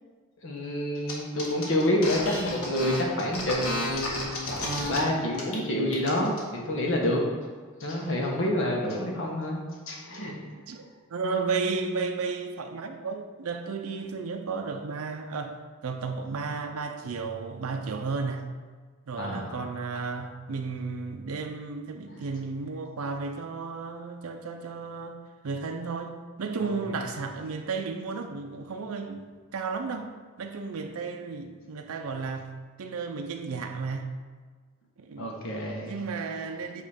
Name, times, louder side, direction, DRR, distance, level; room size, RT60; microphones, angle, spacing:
voice 1, 0.4-4.5 4.9-7.2 7.8-10.3 19.2-19.6 26.6-26.7 35.2-35.9, left 1 dB, 60° left, -1 dB, 1.3 m, -28 dB
sound 1, 1.1-1.2 1.4-5.0 5.3-5.6 5.9-6.4, left 1 dB, 85° left, 1.6 m, -32 dB
voice 2, 10.7-15.6 15.8-18.4 19.1-29.2 29.5-30.1 30.4-32.5 32.8-34.1 35.0-35.3 35.8-36.8, right 4 dB, 85° right, 5 dB, 0.5 m, -33 dB
8.6 x 3.1 x 5.0 m, 1.5 s
head